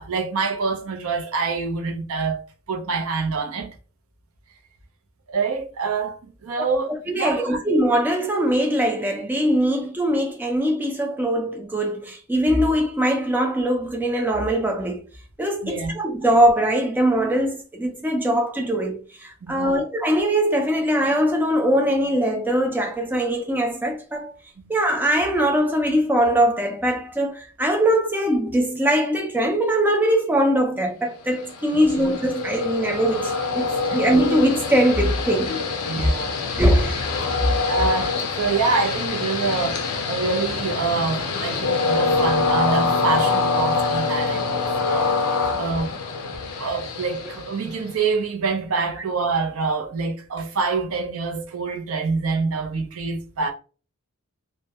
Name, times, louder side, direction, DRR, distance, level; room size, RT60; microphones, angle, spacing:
voice 1, 0.0-3.8 5.3-6.9 7.1-7.6 15.6-16.0 19.4-19.8 24.6-24.7 31.7-31.9 33.9-34.0 35.8-36.4 37.6-46.0 46.6-53.5, right 4 dB, 75° right, 0.5 m, -26 dB
voice 2, 7.1-15.0 15.4-24.3 24.7-35.5 36.0-36.1 36.6-37.1, right 1 dB, 10° right, 0.3 m, -21 dB
Train, 31.3-48.0, left 4 dB, 90° left, 0.5 m, -25 dB
2.1 x 2.1 x 2.7 m
head